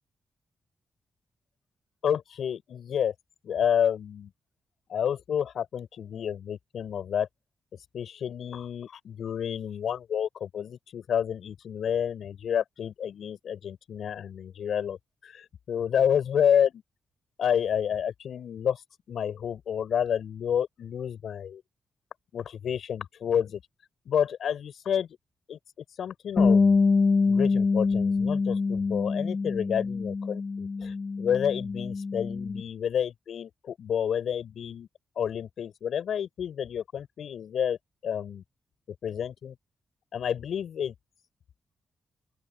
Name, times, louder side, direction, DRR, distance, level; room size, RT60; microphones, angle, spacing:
voice 1, 2.0-3.1 3.4-4.3 4.9-7.3 7.9-15.0 15.2-16.8 17.4-18.8 19.1-21.6 22.3-23.6 24.1-25.1 25.5-25.6 26.0-26.7 27.3-34.9 35.2-37.8 38.0-38.4 39.0-39.6 40.1-40.9, left 8 dB, 75° left, 7.7 m, -29 dB
Bass guitar, 26.4-32.6, left 4 dB, 45° left, 1.8 m, -25 dB
open air
cardioid pair, 80°, 0 cm